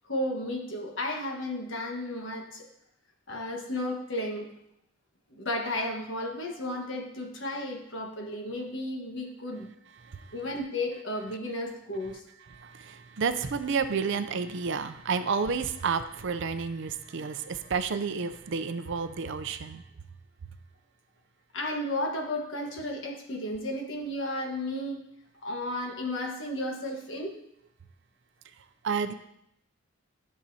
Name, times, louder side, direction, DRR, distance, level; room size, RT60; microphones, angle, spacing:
voice 1, 0.0-2.7 3.3-4.5 5.3-9.7 10.3-12.2 21.5-25.0 25.4-27.3, left 1 dB, 60° left, 1 dB, 1.4 m, -33 dB
voice 2, 12.5-19.8 28.8-29.1, right 5 dB, 60° right, 11 dB, 0.5 m, -30 dB
11.5 x 6.5 x 2.8 m, 0.77 s
head